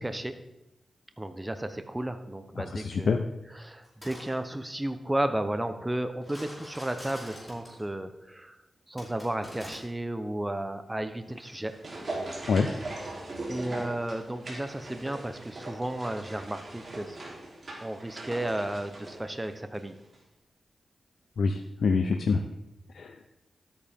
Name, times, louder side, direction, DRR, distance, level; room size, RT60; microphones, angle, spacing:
voice 1, 0.0-0.3 1.2-3.1 3.5-8.6 8.9-11.7 13.1-17.2 17.8-19.9, right 1 dB, 15° right, 8 dB, 0.8 m, -33 dB
voice 2, 2.6-3.3 12.5-12.7 21.4-22.4 22.9-23.1, left 4 dB, 80° left, 6 dB, 0.6 m, -26 dB
sound 1, 3.8-4.3 6.2-7.8 9.0-9.8, equal, 5° left, 4.8 m, -45 dB
sound 2, 11.3-19.9 20.1-20.2, right 2 dB, 50° right, 3.3 m, -40 dB
13.0 x 8.7 x 3.6 m, 0.90 s
cardioid pair, 75°, 0 cm